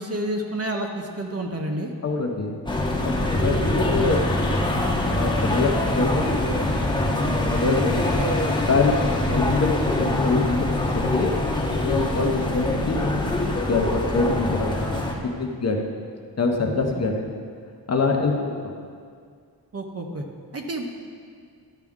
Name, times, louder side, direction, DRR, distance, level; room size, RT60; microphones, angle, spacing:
voice 1, 0.0-1.9 19.7-20.2 20.5-20.8, right 1 dB, 35° right, 2 dB, 0.7 m, -29 dB
voice 2, 2.0-2.6 3.0-4.2 4.5-4.7 5.1-6.6 7.5-8.9 9.3-11.3 11.7-14.8 15.3-15.9 16.4-17.3 17.9-18.7, left 3 dB, 40° left, 2 dB, 0.7 m, -25 dB
sound 1, 2.7-15.1, left 1 dB, 10° left, 0.9 m, -24 dB
12.0 x 5.9 x 3.6 m, 2.1 s
wide cardioid pair, 140°, 42 cm